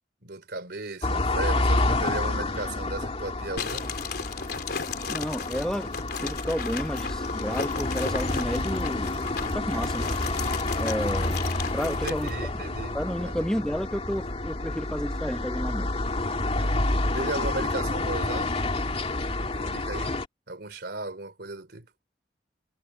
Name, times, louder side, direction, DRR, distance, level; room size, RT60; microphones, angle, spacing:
voice 1, 0.2-3.9 11.9-13.0 13.2-13.5 16.4-18.6 19.4-20.2 20.5-21.9, right 2 dB, 65° right, 3.9 m, -36 dB
sound 1, 1.0-20.3, left 2 dB, 35° left, 2.5 m, -29 dB
sound 2, 3.6-12.4, left 5 dB, 65° left, 3.9 m, -35 dB
voice 2, 5.1-5.9 6.2-10.1 10.8-11.4 11.7-12.5 12.9-15.9, equal, 5° left, 0.9 m, -31 dB
head